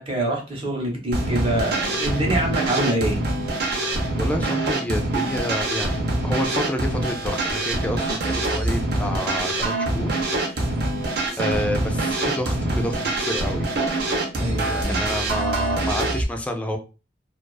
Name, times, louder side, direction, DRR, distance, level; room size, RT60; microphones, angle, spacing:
voice 1, 0.0-3.2 14.4-15.1, right 1 dB, 35° right, 0.8 m, -25 dB
sound 1, 1.1-16.2, right 2 dB, 65° right, 0.6 m, -24 dB
voice 2, 4.2-10.1 10.4-10.7 11.4-13.7 14.8-16.8, left 1 dB, 10° left, 0.3 m, -29 dB
2.4 x 2.3 x 2.3 m
head